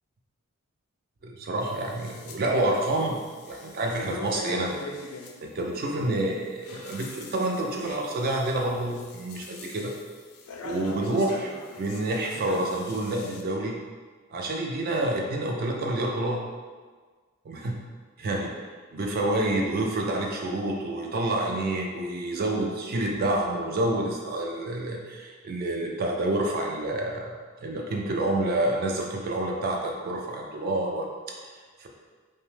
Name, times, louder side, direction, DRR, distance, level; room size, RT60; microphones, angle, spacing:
voice 1, 1.2-3.2 3.5-4.7 5.4-9.9 10.6-13.8 14.3-16.4 17.5-17.8 18.2-18.5 18.9-27.3 27.6-31.3 31.8-31.9, right 1 dB, 45° right, 0 dB, 0.4 m, -28 dB
sound 1, 1.6-2.4 2.7-5.3 6.4-13.4, left 3 dB, 75° left, 0.4 m, -42 dB
2.8 x 2.1 x 3.1 m, 1.5 s
head